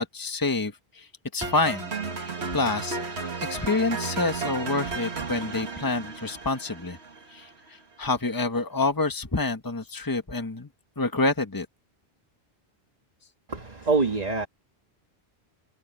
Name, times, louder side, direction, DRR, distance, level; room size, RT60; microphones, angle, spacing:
voice 1, 0.0-1.9 2.5-3.0 3.4-7.0 7.3-10.7 11.0-11.7, left 3 dB, 20° left, 1.5 m, -27 dB
sound 1, 1.4-7.5, right 4 dB, 90° right, 2.0 m, -34 dB
voice 2, 13.5-14.5, right 3 dB, 40° right, 1.6 m, -25 dB
omnidirectional pair, 1.1 m